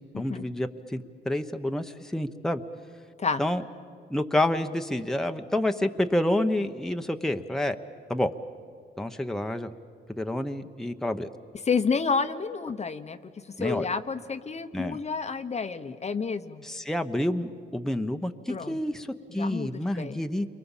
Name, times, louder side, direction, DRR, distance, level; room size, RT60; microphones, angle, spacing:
voice 1, 0.2-2.6 3.4-3.6 4.1-7.8 8.1-8.3 9.0-9.7 10.2-11.3 13.6-13.9 14.7-15.0 16.6-20.5, left 1 dB, ahead, 6 dB, 1.0 m, -28 dB
voice 2, 11.6-13.2 13.6-16.6 18.5-18.8 19.3-20.2, left 5 dB, 35° left, 9 dB, 1.0 m, -29 dB
29.0 x 23.5 x 7.3 m, 2.2 s
cardioid pair, 90°, 20 cm